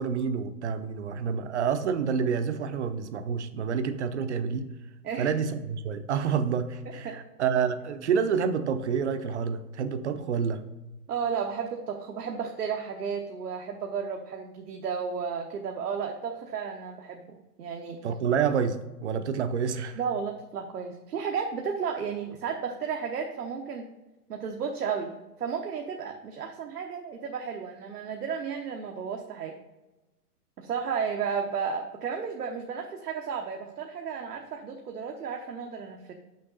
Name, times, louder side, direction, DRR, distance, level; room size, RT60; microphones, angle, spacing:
voice 1, 0.0-4.7 5.2-10.6 18.0-20.0, right 6 dB, 50° right, 11 dB, 0.7 m, -28 dB
voice 2, 6.9-7.2 11.1-18.0 20.0-23.9 24.3-29.5 30.6-36.1, right 6 dB, 75° right, 2 dB, 1.0 m, -33 dB
6.5 x 5.9 x 4.0 m, 1.1 s
hypercardioid pair, 155°, 46 cm